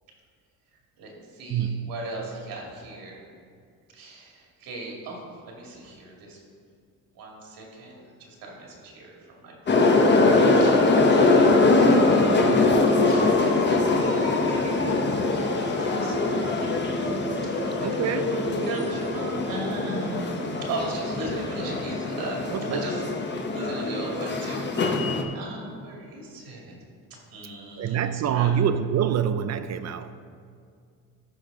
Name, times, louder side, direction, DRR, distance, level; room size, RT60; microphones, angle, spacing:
voice 1, 1.0-3.2 3.9-6.4 7.1-17.1 17.4-20.3 20.7-23.1 23.5-26.7 27.3-28.5, right 2 dB, 80° right, -2 dB, 2.3 m, -37 dB
voice 2, 1.5-1.9 17.8-18.4 22.5-22.9 27.8-30.1, right 9 dB, 50° right, 11 dB, 0.5 m, -26 dB
sound 1, 9.7-25.2, left 3 dB, 30° left, 1.0 m, -22 dB
13.5 x 5.3 x 3.8 m, 2.2 s
cardioid pair, 115°, 35 cm